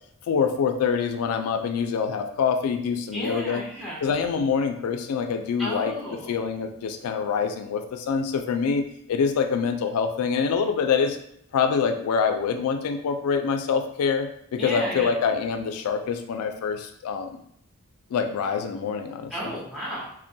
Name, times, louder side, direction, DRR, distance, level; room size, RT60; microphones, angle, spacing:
voice 1, 0.3-3.6 4.0-5.9 6.3-11.2 11.5-17.4 18.1-19.5, left 6 dB, 85° left, 6 dB, 0.3 m, -25 dB
voice 2, 3.1-4.0 5.6-6.3 14.6-15.1 19.3-20.1, equal, ahead, -6 dB, 0.5 m, -32 dB
2.2 x 2.1 x 2.6 m, 0.71 s
head